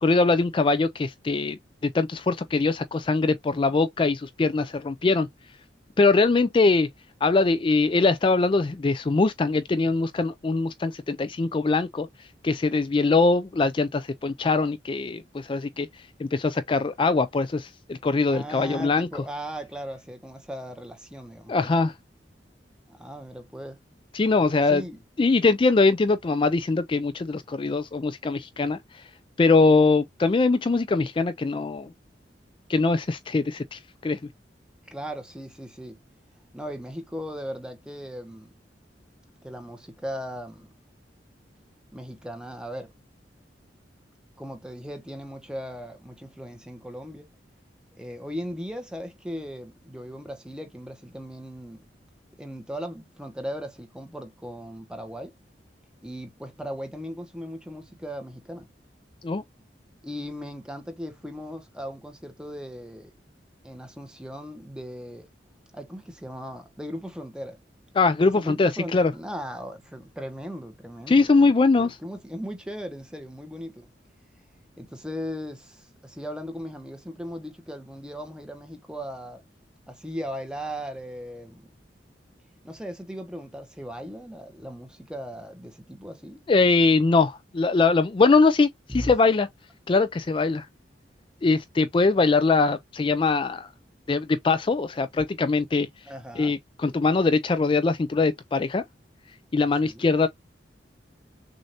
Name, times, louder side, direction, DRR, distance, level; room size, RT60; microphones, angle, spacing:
voice 1, 0.0-5.3 6.0-6.9 7.2-19.1 21.5-21.9 24.1-24.8 25.2-29.1 29.4-31.9 32.7-34.2 59.2-59.4 67.9-69.1 71.1-72.0 86.5-89.5 89.9-90.7 91.4-93.7 94.1-96.1 96.4-98.8 99.5-100.3, left 3 dB, 30° left, 0.3 m, -22 dB
voice 2, 18.3-21.5 22.9-23.8 24.7-25.0 34.8-36.0 36.5-38.5 39.4-40.7 41.9-42.9 44.4-47.3 48.0-51.8 52.4-55.3 56.0-58.7 60.0-63.1 63.6-65.3 65.7-67.6 68.4-71.5 71.8-73.9 74.8-79.4 79.9-81.6 82.6-86.4 88.9-89.1 96.1-96.6 99.8-100.1, equal, 5° right, 1.1 m, -37 dB
6.4 x 2.6 x 2.7 m
head